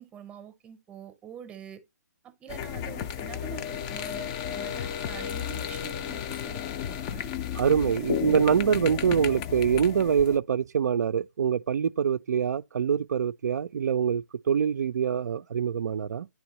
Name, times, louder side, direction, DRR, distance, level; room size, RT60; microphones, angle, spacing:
voice 1, 0.0-1.8 2.2-7.3, right 8 dB, 10° right, 0.7 m, -46 dB
sound 1, 2.5-10.4, left 9 dB, 20° left, 0.4 m, -33 dB
voice 2, 7.6-16.3, right 7 dB, 65° right, 0.4 m, -25 dB
9.9 x 3.4 x 2.9 m
hypercardioid pair, 150°, 10 cm